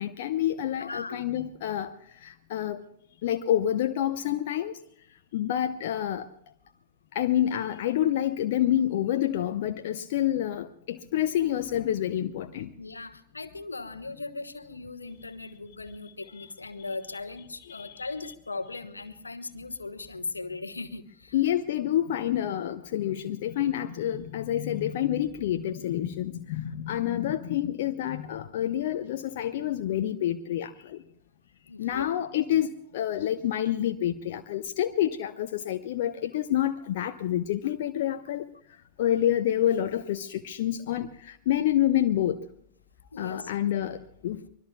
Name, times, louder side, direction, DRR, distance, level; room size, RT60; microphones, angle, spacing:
voice 1, 0.0-1.9 2.2-2.8 3.2-4.7 5.3-6.3 7.1-12.7 16.4-16.5 17.7-18.0 21.3-31.0 31.8-38.4 39.0-42.4 43.2-44.4, left 11 dB, 55° left, 8 dB, 0.7 m, -28 dB
voice 2, 0.8-1.3 12.8-21.4 26.7-27.1 31.7-32.2 43.1-43.5, left 3 dB, 80° left, 10 dB, 1.2 m, -39 dB
24.5 x 21.5 x 2.3 m, 0.73 s
figure-of-eight pair, 90°, 0 cm